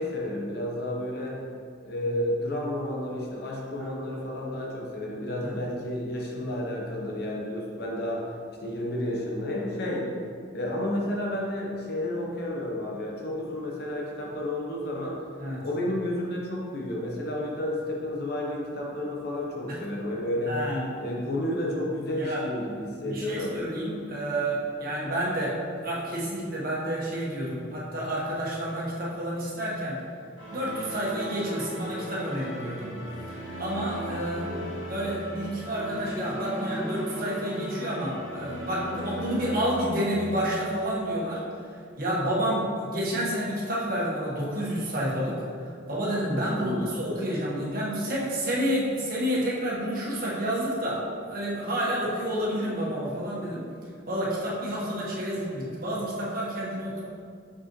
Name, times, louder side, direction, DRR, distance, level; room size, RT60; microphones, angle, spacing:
voice 1, 0.0-1.4 1.8-8.3 8.6-10.1 10.5-15.2 15.6-20.6 21.0-23.6 34.7-34.8 46.5-46.8, left 1 dB, 55° left, -2 dB, 1.0 m, -31 dB
voice 2, 20.5-20.9 22.2-22.4 23.0-25.6 25.8-30.0 30.5-33.0 33.6-51.0 51.3-53.6 54.1-57.0, equal, 50° right, -6 dB, 1.5 m, -29 dB
sound 1, 30.4-39.9, equal, 80° left, 1.4 m, -37 dB
6.1 x 5.4 x 3.1 m, 2.2 s
head